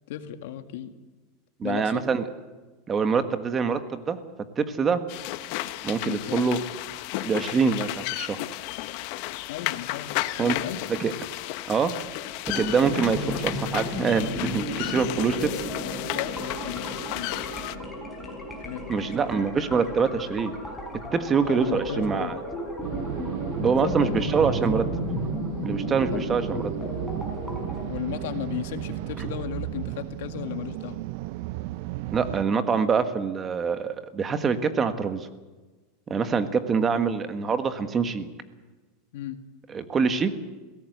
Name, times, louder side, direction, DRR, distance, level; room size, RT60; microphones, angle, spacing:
voice 1, 0.1-0.9 1.6-2.1 6.0-6.6 9.5-10.9 15.8-17.4 18.6-19.5 21.4-22.3 23.6-24.8 26.1-26.4 27.6-31.0 39.1-39.4, left 11 dB, 75° left, 7 dB, 1.9 m, -35 dB
voice 2, 1.6-2.2 2.9-4.2 4.6-5.0 5.8-6.6 7.2-8.4 10.4-10.6 11.0-11.1 11.7-11.9 12.5-15.5 18.9-20.5 21.1-22.4 23.6-24.9 25.6-26.7 32.1-35.3 36.1-38.3 39.7-40.3, right 5 dB, 20° right, 9 dB, 1.5 m, -25 dB
sound 1, 5.1-17.8, left 17 dB, 55° left, 1.0 m, -33 dB
sound 2, 12.4-27.9, left 1 dB, ahead, 6.2 m, -34 dB
sound 3, 22.8-32.4, right 16 dB, 60° right, 0.6 m, -34 dB
22.0 x 17.0 x 8.0 m, 1.3 s
supercardioid pair, 140°, 0 cm